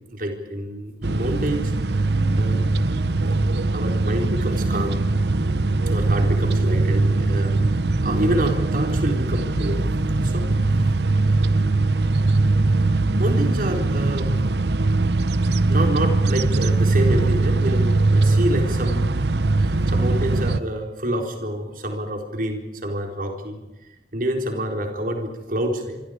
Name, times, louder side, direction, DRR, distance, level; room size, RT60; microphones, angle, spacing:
voice 1, 0.1-2.0 2.4-2.7 3.7-5.0 5.9-7.6 8.0-9.8 10.2-10.7 13.2-14.3 15.7-19.3 19.6-23.6 24.1-26.0, right 1 dB, 50° right, 3 dB, 4.1 m, -27 dB
sound 1, 1.0-20.6, right 2 dB, 70° right, 0.9 m, -21 dB
sound 2, 2.0-14.4, equal, 15° right, 3.7 m, -37 dB
26.0 x 25.5 x 5.1 m, 1.0 s
head